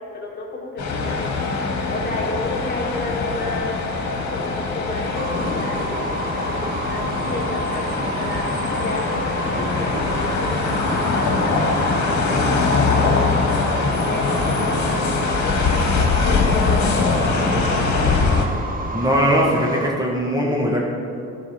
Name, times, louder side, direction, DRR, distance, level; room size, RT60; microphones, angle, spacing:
voice 1, 0.0-3.8 4.3-13.6 13.9-15.9 16.2-18.3, left 2 dB, 35° left, -2 dB, 2.0 m, -32 dB
sound 1, 0.8-18.5, left 4 dB, 65° left, 1.5 m, -22 dB
sound 2, 5.2-19.9, right 2 dB, 30° right, 1.0 m, -30 dB
voice 2, 18.9-20.9, equal, 15° right, -3 dB, 1.3 m, -20 dB
12.0 x 4.9 x 5.5 m, 2.5 s
cardioid pair, 90°, 30 cm